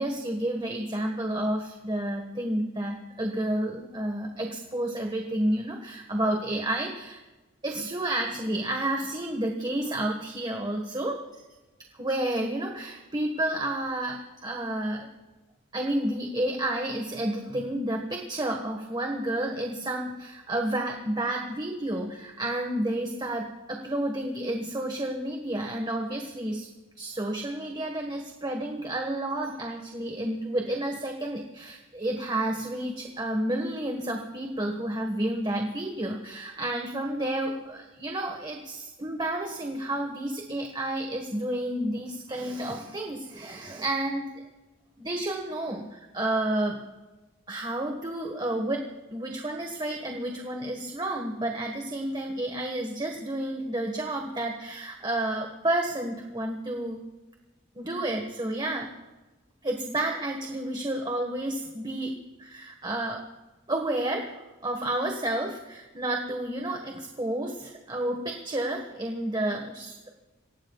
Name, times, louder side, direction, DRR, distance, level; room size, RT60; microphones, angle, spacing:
voice 1, 0.0-7.2 7.6-11.4 11.9-15.1 15.7-26.7 27.0-44.2 45.0-46.8 47.5-48.8 49.1-57.0 57.7-58.9 59.6-62.1 62.4-63.2 63.7-64.4 64.6-70.1, right 1 dB, 25° right, 2 dB, 1.5 m, -30 dB
27.5 x 17.5 x 2.4 m, 1.2 s
head